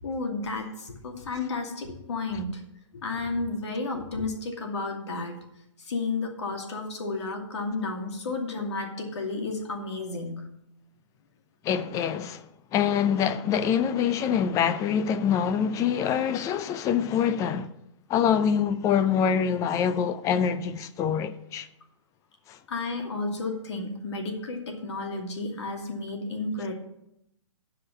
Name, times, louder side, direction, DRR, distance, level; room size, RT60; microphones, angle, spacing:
voice 1, 0.0-2.7 2.9-5.4 5.8-10.5 22.7-26.7, left 3 dB, 65° left, 2.5 m, -32 dB
voice 2, 11.6-12.5 12.7-17.7 18.1-21.7 22.5-22.6, left 8 dB, 20° left, 0.6 m, -25 dB
12.0 x 5.1 x 7.1 m
hypercardioid pair, 130°, 15 cm